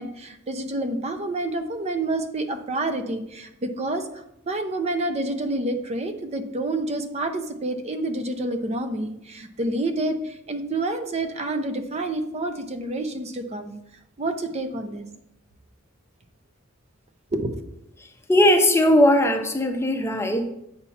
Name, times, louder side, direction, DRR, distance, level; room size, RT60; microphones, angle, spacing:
voice 1, 0.0-4.1 4.5-13.7 14.2-15.1 17.3-17.6, right 2 dB, 30° right, 7 dB, 0.5 m, -28 dB
voice 2, 18.0-20.5, left 1 dB, 10° left, 5 dB, 0.6 m, -19 dB
8.1 x 2.8 x 5.7 m, 0.81 s
head